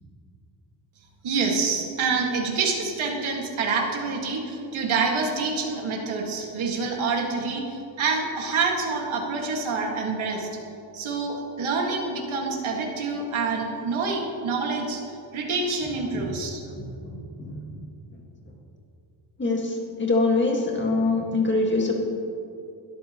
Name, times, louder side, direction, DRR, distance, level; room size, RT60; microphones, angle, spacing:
voice 1, 1.2-10.5 10.9-16.6, right 4 dB, 90° right, 0 dB, 2.1 m, -27 dB
voice 2, 16.8-17.8 18.1-18.2 19.4-21.9, left 3 dB, 25° left, -1 dB, 1.9 m, -25 dB
21.0 x 13.0 x 3.1 m, 2.8 s
wide cardioid pair, 150°, 47 cm